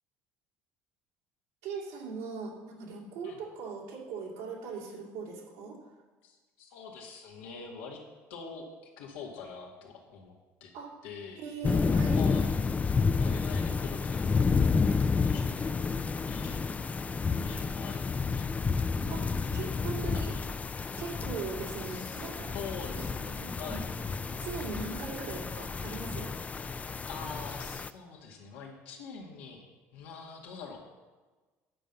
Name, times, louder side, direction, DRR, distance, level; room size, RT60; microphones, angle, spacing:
voice 1, 1.6-5.8 10.7-10.9 11.4-12.2 19.1-20.4 21.0-22.5 23.0-23.1 23.4-23.8 24.4-26.3, right 4 dB, 85° right, -3 dB, 2.6 m, -40 dB
voice 2, 6.2-8.0 8.3-8.7 9.0-10.3 10.6-10.7 11.0-11.5 12.2-12.5 13.2-14.9 15.2-15.5 16.3-16.6 17.0-18.5 20.1-20.4 21.8-22.2 22.5-23.9 27.1-29.7 29.9-30.8, left 5 dB, 85° left, -1 dB, 1.9 m, -44 dB
sound 1, 11.6-27.9, left 4 dB, 25° left, 0.4 m, -30 dB
9.9 x 5.3 x 7.1 m, 1.3 s
supercardioid pair, 90°, 6 cm